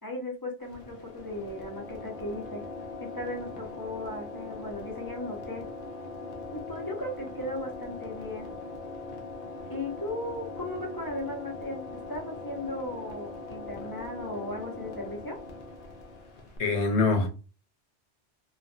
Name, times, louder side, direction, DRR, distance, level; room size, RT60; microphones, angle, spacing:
voice 1, 0.0-2.6 3.0-5.6 6.5-8.5 9.7-15.4, left 1 dB, 25° left, 0.6 m, -37 dB
sound 1, 0.6-16.6, left 3 dB, 55° left, 0.8 m, -41 dB
voice 2, 16.6-17.3, left 3 dB, 75° left, 1.0 m, -24 dB
3.2 x 2.2 x 2.6 m
omnidirectional pair, 1.2 m